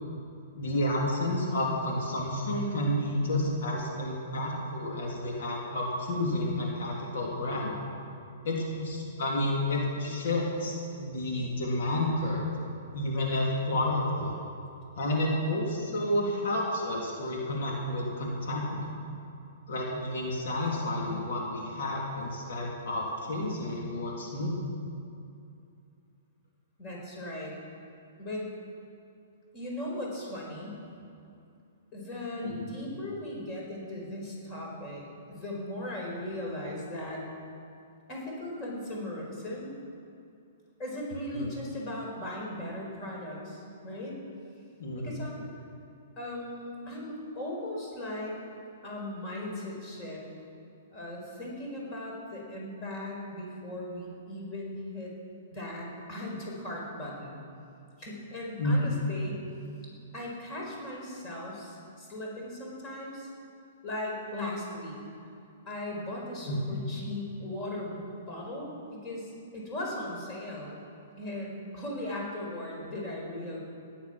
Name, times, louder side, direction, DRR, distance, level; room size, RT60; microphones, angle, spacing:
voice 1, 0.6-7.8 8.4-12.5 12.9-14.3 15.0-18.9 19.7-24.6 32.4-32.7 41.3-41.5 44.8-45.3 58.6-59.0 66.5-66.8, left 1 dB, 70° left, -2 dB, 3.3 m, -30 dB
voice 2, 26.8-27.5 28.2-28.5 29.5-30.8 31.9-37.2 38.1-39.7 40.8-44.1 45.0-45.4 46.2-48.4 48.8-50.2 50.9-55.1 55.5-57.4 58.0-59.4 60.1-63.3 63.8-65.0 65.6-70.8 71.2-73.6, left 1 dB, 25° left, -2 dB, 4.7 m, -38 dB
17.0 x 11.5 x 6.1 m, 2.6 s
hypercardioid pair, 150°, 0 cm